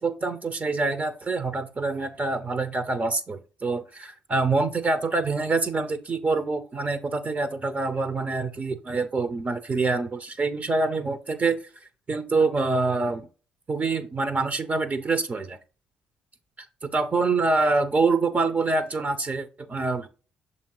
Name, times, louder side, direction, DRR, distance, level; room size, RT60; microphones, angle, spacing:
voice 1, 0.0-11.6 12.1-13.3 13.7-15.6 16.8-20.1, right 3 dB, 35° right, 0.9 m, -26 dB
7.0 x 2.8 x 4.7 m
hypercardioid pair, 45°, 4 cm